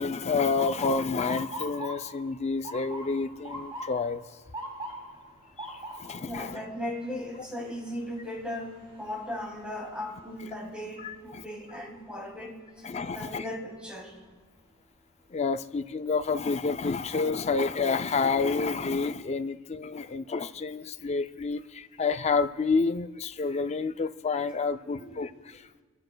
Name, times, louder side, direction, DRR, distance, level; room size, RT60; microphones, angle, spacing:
voice 1, 0.0-4.2 5.6-6.6 11.0-11.4 12.8-13.4 15.3-25.6, left 4 dB, 30° left, 9 dB, 0.4 m, -29 dB
Motor vehicle (road) / Siren, 0.6-12.5 12.9-13.4 14.2-14.5 16.3-16.6 17.1-17.2 17.6-18.3, right 1 dB, 25° right, 2.6 m, -43 dB
voice 2, 6.3-14.2 25.0-25.2, left 1 dB, 5° right, -1 dB, 2.5 m, -37 dB
26.5 x 14.5 x 2.2 m, 1.4 s
head